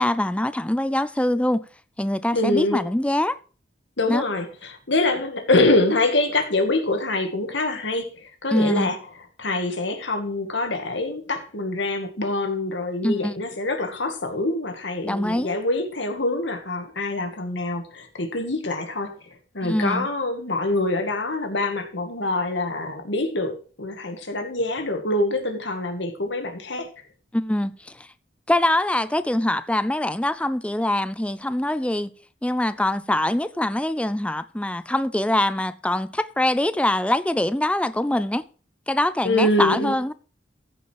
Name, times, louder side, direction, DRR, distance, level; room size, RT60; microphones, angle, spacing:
voice 1, 0.0-1.6 2.0-3.4 4.1-4.2 8.5-8.9 13.0-13.4 15.0-15.6 19.6-20.1 27.3-28.1 28.5-32.1 32.4-38.4 38.9-40.1, left 1 dB, 5° left, 0.4 m, -23 dB
voice 2, 2.3-2.8 4.0-9.0 9.4-26.9 39.2-40.0, left 2 dB, 75° left, 2.1 m, -25 dB
14.5 x 5.6 x 4.7 m
head